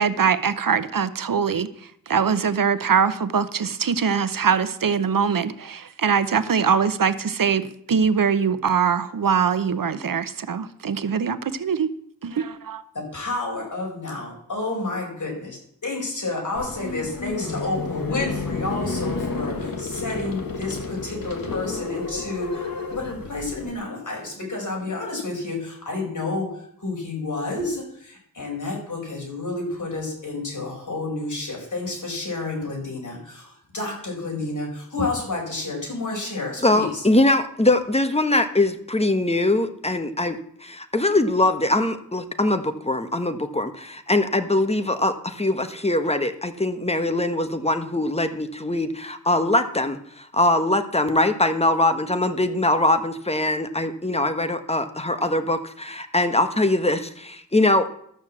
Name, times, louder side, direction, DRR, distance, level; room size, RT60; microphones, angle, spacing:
voice 1, 0.0-1.7 2.1-11.9 12.2-12.8, right 6 dB, 75° right, 13 dB, 0.9 m, -22 dB
voice 2, 12.9-37.0, left 2 dB, 60° left, 0 dB, 4.9 m, -30 dB
sound 1, 16.6-23.7, left 4 dB, 80° left, 1.6 m, -31 dB
voice 3, 36.6-57.9, left 2 dB, 20° left, 8 dB, 1.2 m, -22 dB
13.0 x 6.5 x 7.5 m, 0.69 s
wide cardioid pair, 65°, 34 cm